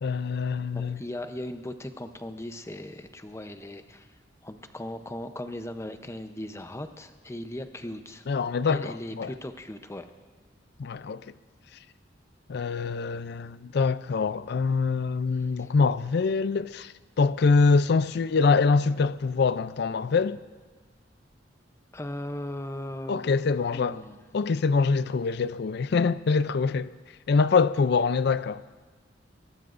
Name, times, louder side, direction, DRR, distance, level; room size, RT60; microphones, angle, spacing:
voice 1, 0.0-1.0 8.3-9.3 10.8-11.2 12.5-20.4 23.1-24.0 24.3-26.9 27.3-28.6, left 4 dB, 60° left, 0.4 m, -24 dB
voice 2, 0.7-4.1 4.4-10.1 15.6-15.7 21.9-23.4 23.6-24.2, left 1 dB, 15° left, 0.7 m, -38 dB
23.0 x 19.5 x 2.6 m
head